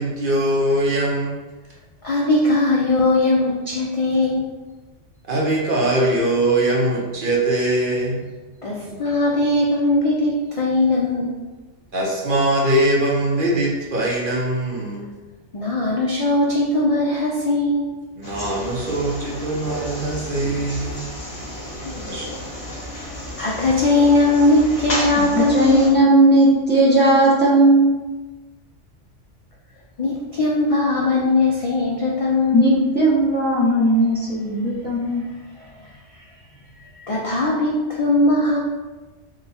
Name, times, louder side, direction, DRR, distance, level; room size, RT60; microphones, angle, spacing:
voice 1, 0.0-1.3 5.3-8.3 8.9-9.0 11.9-15.1 18.2-21.0 22.1-22.3, right 1 dB, 50° right, -3 dB, 0.8 m, -21 dB
voice 2, 2.0-4.4 8.6-11.4 15.5-17.9 21.6-22.1 23.1-25.8 30.0-32.6 35.0-36.2 36.8-38.6, left 2 dB, 65° left, -3 dB, 0.3 m, -20 dB
sound 1, 18.2-25.9, left 1 dB, 80° left, 1.5 m, -32 dB
voice 3, 25.3-27.9 32.5-35.3, right 1 dB, 10° left, -7 dB, 0.6 m, -16 dB
3.8 x 2.3 x 4.1 m, 1.2 s
omnidirectional pair, 1.3 m